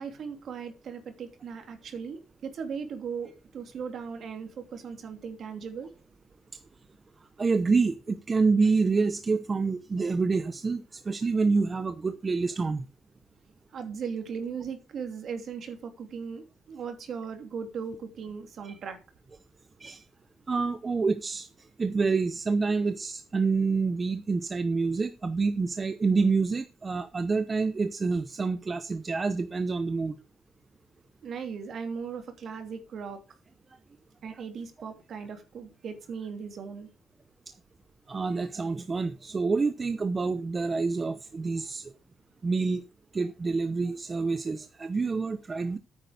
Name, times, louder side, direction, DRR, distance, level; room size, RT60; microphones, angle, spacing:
voice 1, 0.0-5.9 13.7-19.0 22.9-23.0 31.2-33.2 34.2-36.9, right 6 dB, 60° right, 2.9 m, -38 dB
voice 2, 7.4-12.8 18.6-18.7 19.8-20.0 20.5-21.5 21.8-30.1 38.1-41.8 42.4-42.8 43.1-45.8, right 4 dB, 30° right, 0.9 m, -27 dB
9.5 x 8.7 x 5.0 m
cardioid pair, 90°, 0 cm